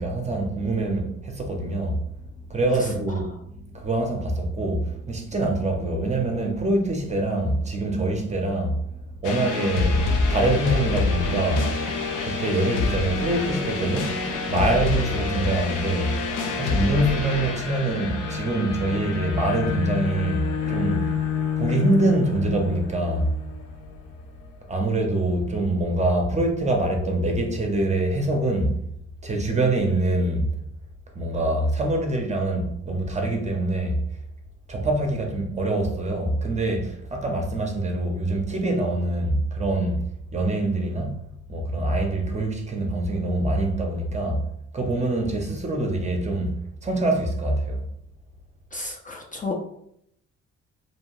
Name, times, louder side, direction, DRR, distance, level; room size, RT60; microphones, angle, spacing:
voice 1, 0.0-2.0 2.5-8.9 9.2-11.8 12.2-16.2 16.5-21.1 21.6-23.3 24.7-28.8 29.2-30.5 31.2-34.0 34.7-40.0 40.3-41.2 41.5-44.4 44.7-47.8, right 2 dB, 25° right, 0.6 m, -25 dB
sound 1, 9.2-24.0, left 4 dB, 85° left, 0.6 m, -27 dB
voice 2, 48.7-49.5, left 3 dB, 25° left, 0.4 m, -32 dB
2.7 x 2.3 x 3.0 m
cardioid pair, 90°, 30 cm